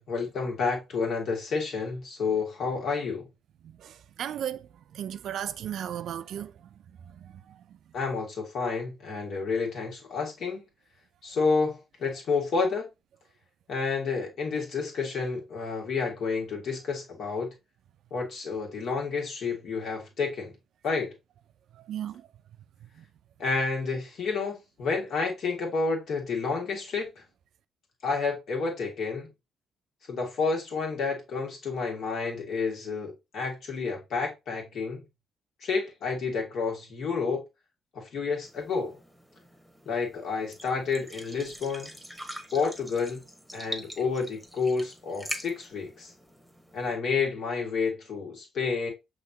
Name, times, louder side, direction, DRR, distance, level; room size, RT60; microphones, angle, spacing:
voice 1, 0.0-3.3 7.9-10.6 11.2-12.9 13.7-17.5 18.1-20.5 20.8-21.1 23.4-27.2 28.0-29.3 30.1-35.0 35.6-37.4 38.0-39.0 39.9-42.0 42.5-43.2 43.5-46.1 46.7-48.9, left 4 dB, 65° left, 1.9 m, -30 dB
voice 2, 3.6-6.7 7.0-7.8 21.7-22.3 23.0-23.1, right 10 dB, 70° right, 0.4 m, -36 dB
sound 1, 38.4-46.9, right 1 dB, 5° right, 1.2 m, -43 dB
5.8 x 3.2 x 2.8 m
cardioid pair, 85°, 0 cm